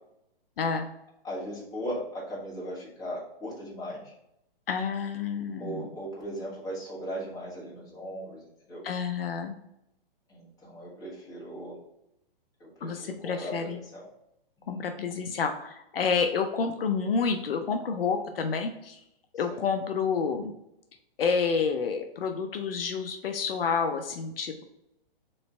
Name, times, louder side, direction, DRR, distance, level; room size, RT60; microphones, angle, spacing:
voice 1, 0.6-0.9 4.7-6.0 8.8-9.6 12.8-13.8 14.7-19.0 19.3-20.5 21.2-24.6, left 5 dB, 70° left, 6 dB, 0.6 m, -29 dB
voice 2, 1.2-4.1 5.6-8.8 10.3-11.8 12.6-14.1 14.6-14.9 19.5-19.6, equal, 10° left, -6 dB, 1.5 m, -38 dB
4.0 x 3.2 x 3.4 m, 0.82 s
hypercardioid pair, 135°, 30 cm